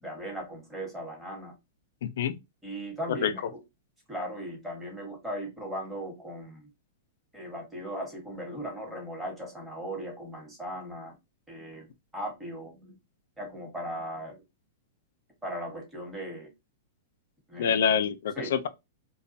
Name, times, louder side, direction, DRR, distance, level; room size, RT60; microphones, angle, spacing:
voice 1, 0.0-1.5 2.6-3.6 4.1-6.7 7.3-11.1 11.5-11.9 12.1-13.0 13.4-14.4 15.4-16.5 17.5-17.8 18.4-18.6, right 1 dB, 5° right, 1.2 m, -38 dB
voice 2, 2.0-2.3 3.2-3.3 17.6-18.7, left 7 dB, 75° left, 0.3 m, -26 dB
2.3 x 2.2 x 2.6 m
hypercardioid pair, 135°, 0 cm